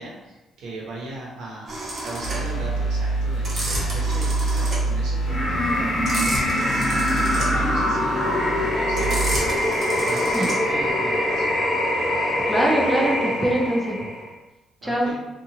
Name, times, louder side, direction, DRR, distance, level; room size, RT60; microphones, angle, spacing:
voice 1, 0.0-11.5 14.8-15.1, right 2 dB, 85° right, -4 dB, 0.9 m, -38 dB
sound 1, 1.7-10.9, right 1 dB, 50° right, 1.0 m, -31 dB
sound 2, 2.2-9.3, right 2 dB, 75° left, 0.6 m, -27 dB
sound 3, 5.3-14.3, left 1 dB, 30° left, 0.9 m, -23 dB
voice 2, 12.5-14.0 14.8-15.1, right 1 dB, 10° right, -2 dB, 0.6 m, -23 dB
2.8 x 2.5 x 2.7 m, 1.0 s
cardioid pair, 90°, 0 cm